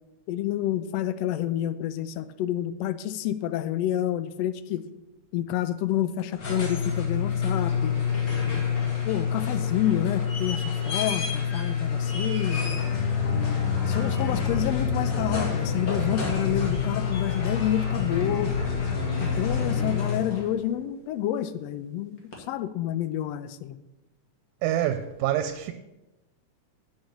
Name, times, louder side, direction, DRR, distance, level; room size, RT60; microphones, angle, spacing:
voice 1, 0.3-4.8 5.3-7.9 8.4-8.7 9.1-12.7 13.3-18.5 19.2-23.8, left 12 dB, 80° left, 1.5 m, -29 dB
sound 1, 6.2-20.6 22.3-22.4, left 7 dB, 40° left, 2.3 m, -28 dB
sound 2, 12.7-19.9, left 2 dB, 55° left, 2.3 m, -32 dB
voice 2, 24.6-25.7, right 11 dB, 85° right, 2.0 m, -26 dB
8.2 x 6.5 x 8.2 m
omnidirectional pair, 3.4 m